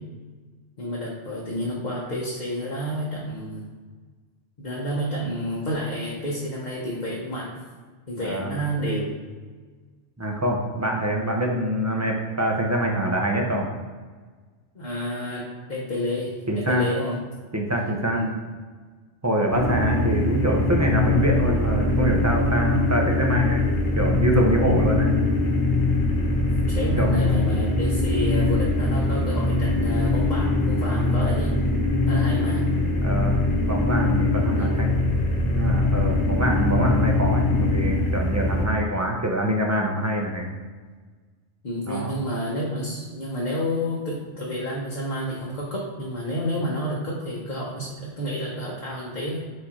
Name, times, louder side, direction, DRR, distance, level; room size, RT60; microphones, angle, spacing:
voice 1, 0.8-3.7 4.6-7.6 8.1-9.1 14.7-17.2 18.1-18.4 26.1-31.5 32.1-32.7 34.3-34.8 41.6-49.4, equal, 40° left, -4 dB, 1.0 m, -30 dB
voice 2, 8.2-8.6 10.2-13.7 16.5-16.9 17.5-18.2 19.2-23.6 23.9-25.2 27.0-27.1 33.0-33.4 33.7-35.0 35.4-40.5 41.9-42.1, right 1 dB, 15° right, 0 dB, 0.6 m, -25 dB
sound 1, 19.5-38.7, left 2 dB, 70° left, 1.3 m, -22 dB
4.8 x 4.6 x 4.3 m, 1.5 s
omnidirectional pair, 1.3 m